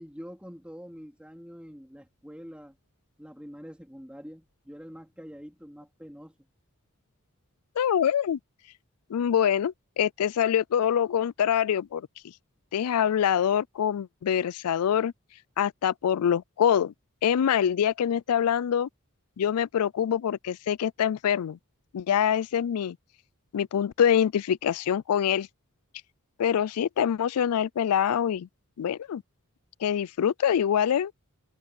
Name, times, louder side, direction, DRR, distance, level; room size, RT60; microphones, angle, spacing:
voice 1, 0.0-2.8 3.2-6.4, equal, 5° right, 3.7 m, -45 dB
voice 2, 7.8-8.4 9.1-12.1 12.7-15.1 15.6-16.9 17.2-18.9 19.4-21.6 21.9-23.0 23.5-25.5 26.4-28.5 28.8-29.2 29.8-31.1, left 9 dB, 85° left, 0.4 m, -25 dB
head